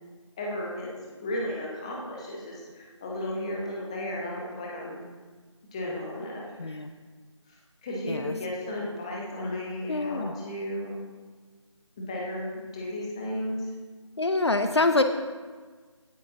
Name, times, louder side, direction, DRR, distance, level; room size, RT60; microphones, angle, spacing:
voice 1, 0.4-0.9 1.2-5.0 5.7-6.8 7.5-7.6 7.8-10.9 12.0-13.6, left 1 dB, 10° left, -3 dB, 1.1 m, -34 dB
voice 2, 6.6-6.9 8.1-8.3 9.9-10.3 14.2-15.0, left 2 dB, 55° left, 8 dB, 0.7 m, -25 dB
17.0 x 8.8 x 2.9 m, 1.5 s
figure-of-eight pair, 165°, 16 cm